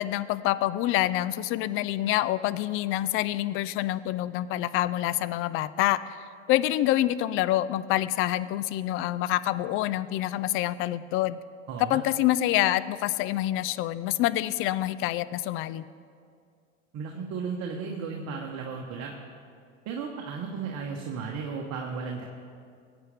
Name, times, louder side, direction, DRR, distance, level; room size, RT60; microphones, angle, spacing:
voice 1, 0.0-6.2 6.5-11.4 11.9-15.8, left 14 dB, 35° left, 16 dB, 0.4 m, -26 dB
voice 2, 11.7-12.0 16.9-19.1 19.8-22.2, right 5 dB, 40° right, 1 dB, 1.3 m, -34 dB
20.0 x 8.9 x 3.5 m, 2.3 s
hypercardioid pair, 80°, 39 cm